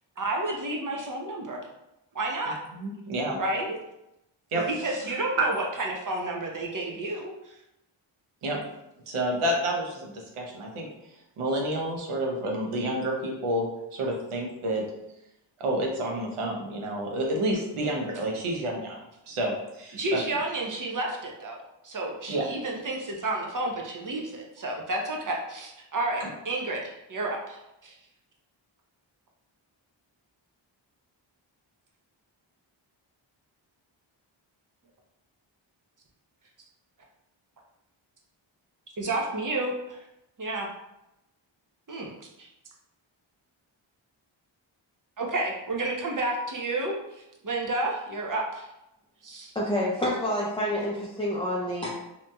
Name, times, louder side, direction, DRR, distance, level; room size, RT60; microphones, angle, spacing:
voice 1, 0.2-1.6 2.1-2.6 3.4-3.8 4.5-7.6 19.9-21.6 21.8-27.9 39.0-39.7 40.4-40.7 41.9-42.5 45.2-48.7 49.2-49.5, right 2 dB, 40° right, 0 dB, 0.7 m, -31 dB
voice 2, 2.7-3.4 4.5-5.1 5.4-5.5 8.4-8.6 9.1-10.9 11.4-14.8 15.6-19.0 19.3-20.2 22.3-22.5 26.2-26.3, right 1 dB, 90° right, 0 dB, 0.7 m, -29 dB
voice 3, 49.5-51.9, left 1 dB, 10° left, -6 dB, 0.5 m, -28 dB
2.9 x 2.6 x 2.2 m, 0.88 s
cardioid pair, 45°, 49 cm